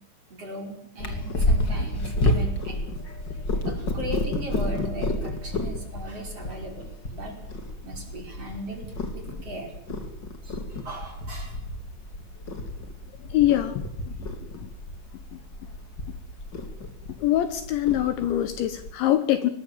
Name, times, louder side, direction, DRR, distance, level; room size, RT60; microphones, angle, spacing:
voice 1, 0.4-2.9 3.6-7.4 7.8-8.9 9.1-9.7 10.4-11.6, right 1 dB, 30° right, 2 dB, 6.1 m, -38 dB
Purr, 1.0-18.9, left 1 dB, 30° left, 2.5 m, -30 dB
voice 2, 13.2-14.1 14.6-14.7 15.3-15.4 17.2-19.5, left 13 dB, 70° left, 11 dB, 3.3 m, -24 dB
25.5 x 22.0 x 7.5 m, 0.63 s
omnidirectional pair, 5.9 m